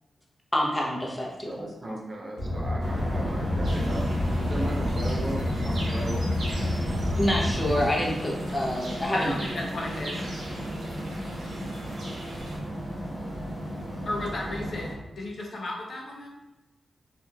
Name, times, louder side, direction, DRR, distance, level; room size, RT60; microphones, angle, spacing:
voice 1, 0.5-1.7 7.2-9.3, equal, 20° left, -2 dB, 0.8 m, -27 dB
voice 2, 1.5-4.0 4.4-6.3, right 1 dB, 45° right, -1 dB, 0.6 m, -36 dB
Car, 2.4-7.9, left 1 dB, 50° left, 1.1 m, -28 dB
sound 1, 2.8-14.9, equal, 25° right, 1.0 m, -34 dB
sound 2, 3.6-12.6, right 1 dB, 75° right, 0.8 m, -42 dB
voice 3, 9.1-10.2 14.1-14.9 15.2-16.4, left 2 dB, 65° left, -1 dB, 0.6 m, -33 dB
2.8 x 2.5 x 2.3 m, 1.0 s
cardioid pair, 50°, 0 cm